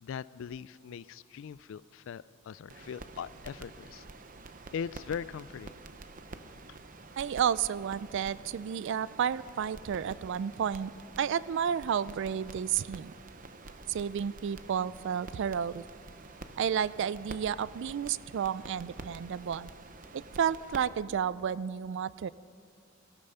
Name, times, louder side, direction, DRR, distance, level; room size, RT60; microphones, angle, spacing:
voice 1, 0.0-4.0 4.7-5.7, left 7 dB, 60° left, 18 dB, 0.3 m, -40 dB
sound 1, 2.7-20.8, right 3 dB, 40° right, 0.7 m, -48 dB
voice 2, 7.2-10.9 11.2-13.1 13.9-15.8 16.6-19.7 20.1-22.3, right 8 dB, 55° right, 19 dB, 0.3 m, -31 dB
19.0 x 13.5 x 5.5 m, 2.4 s
head